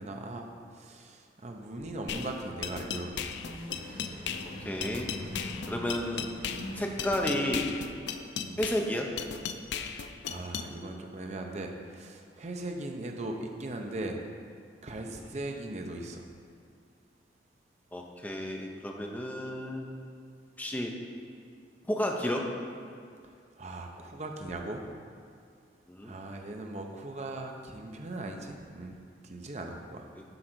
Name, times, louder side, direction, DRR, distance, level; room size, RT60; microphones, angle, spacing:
voice 1, 0.0-3.2 8.4-8.6 9.9-14.2 14.8-16.2 23.6-24.9 26.0-30.1, right 2 dB, 40° right, 3 dB, 0.6 m, -39 dB
sound 1, 2.1-10.7, left 7 dB, 75° left, 0.4 m, -37 dB
sound 2, 2.9-8.0, left 1 dB, 55° left, 1.9 m, -43 dB
voice 2, 4.6-5.1 5.7-6.3 6.8-7.8 8.6-9.1 15.1-15.3 17.9-19.9 20.6-20.9 21.9-22.5 25.9-26.1 30.2-30.3, left 1 dB, 10° left, 1 dB, 0.6 m, -32 dB
7.8 x 3.8 x 6.1 m, 2.3 s
head